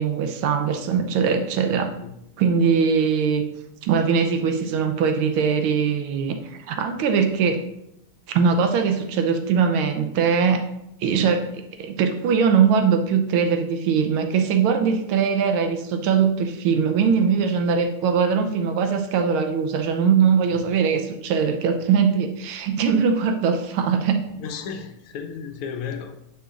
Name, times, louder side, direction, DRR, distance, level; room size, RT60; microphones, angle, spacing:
voice 1, 0.0-1.9 2.4-3.5 3.8-7.6 8.3-10.6 11.0-24.3, right 6 dB, 75° right, 6 dB, 1.5 m, -21 dB
voice 2, 24.4-26.2, left 6 dB, 85° left, 6 dB, 1.7 m, -34 dB
9.8 x 5.9 x 2.4 m, 0.83 s
omnidirectional pair, 2.4 m